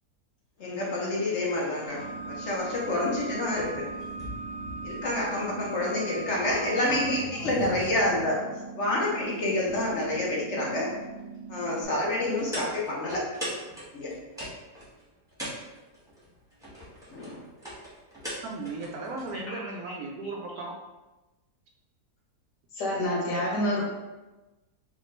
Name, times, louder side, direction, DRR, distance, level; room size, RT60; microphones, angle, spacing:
voice 1, 0.6-3.9 4.8-8.4 8.8-10.9 11.5-13.2 13.9-14.2 17.1-17.5 19.5-19.6, left 1 dB, 55° left, -4 dB, 0.9 m, -28 dB
sound 1, 1.9-7.2, right 2 dB, 30° left, 1.2 m, -40 dB
sound 2, 1.9-11.9, right 5 dB, 55° right, 0.6 m, -43 dB
sound 3, 2.1-19.4, equal, 5° right, 0.9 m, -44 dB
voice 2, 18.4-20.7, right 3 dB, 70° right, 0 dB, 1.0 m, -36 dB
voice 3, 22.7-23.8, left 1 dB, 80° left, -5 dB, 1.7 m, -27 dB
4.3 x 2.3 x 3.1 m, 1.1 s
omnidirectional pair, 1.8 m